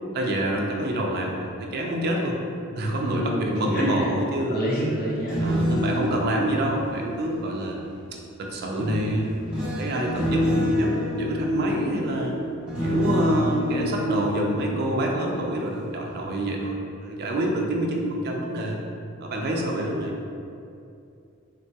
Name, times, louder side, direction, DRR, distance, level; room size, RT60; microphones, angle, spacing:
voice 1, 0.1-2.4 2.8-4.6 5.4-7.8 8.1-10.9 11.2-12.4 12.8-18.8 19.2-20.1, right 1 dB, 45° right, 0 dB, 0.4 m, -27 dB
voice 2, 3.0-4.1 4.4-5.4, equal, 45° left, -5 dB, 0.6 m, -28 dB
sound 1, 5.1-8.0 8.8-15.7 16.1-16.4, left 1 dB, 5° right, 0.6 m, -28 dB
3.7 x 2.2 x 2.7 m, 2.5 s
head